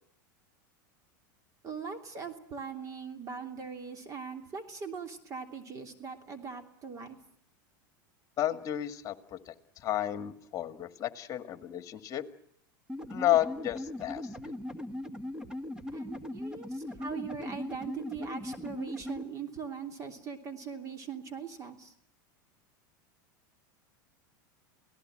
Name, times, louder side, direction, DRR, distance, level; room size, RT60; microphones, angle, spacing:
voice 1, 1.6-7.2 15.9-21.9, right 6 dB, 30° right, 6 dB, 3.1 m, -41 dB
voice 2, 8.4-12.3 13.1-14.2, left 12 dB, 30° left, 9 dB, 2.0 m, -32 dB
sound 1, 12.9-19.2, left 1 dB, 5° right, 1.7 m, -39 dB
28.0 x 18.0 x 7.6 m, 0.67 s
supercardioid pair, 125°, 11 cm